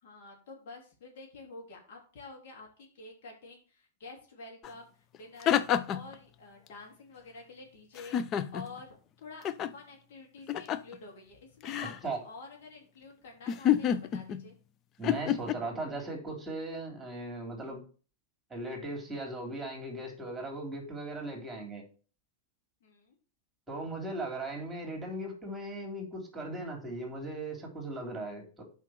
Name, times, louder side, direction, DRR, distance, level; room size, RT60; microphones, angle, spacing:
voice 1, 0.0-5.6 5.9-8.2 8.5-11.9 12.2-14.5 22.8-23.1, left 3 dB, 55° left, 0 dB, 3.0 m, -49 dB
sound 1, 4.6-4.7 5.1-6.1 8.0-8.8 9.4-9.7 10.5-10.9 11.6-12.0 13.5-14.4 15.0-15.5, left 10 dB, 30° left, 0.6 m, -29 dB
voice 2, 15.0-17.8 18.5-21.8 23.7-28.6, right 2 dB, 10° right, 1 dB, 3.4 m, -38 dB
5.9 x 5.6 x 6.4 m, 0.38 s
figure-of-eight pair, 90°, 0 cm